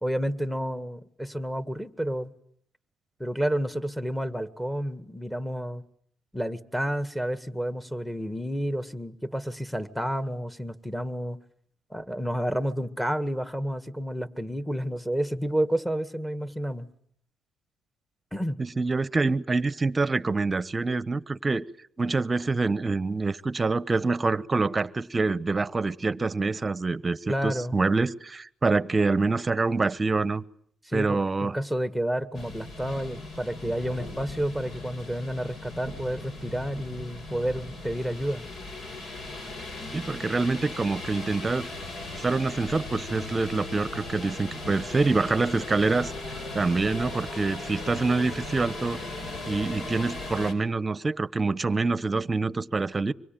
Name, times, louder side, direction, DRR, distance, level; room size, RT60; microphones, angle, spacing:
voice 1, 0.0-2.3 3.2-5.8 6.3-11.4 11.9-16.9 18.3-18.6 27.3-27.8 30.9-38.5, equal, 5° left, 1.9 m, -30 dB
voice 2, 18.6-21.6 22.0-30.4 30.9-31.6 39.9-41.7 42.1-46.1 46.5-49.0 49.5-53.1, right 3 dB, 25° right, 1.0 m, -26 dB
sound 1, 32.3-50.5, left 2 dB, 60° left, 5.4 m, -38 dB
25.5 x 23.5 x 9.2 m
cardioid pair, 90°, 0 cm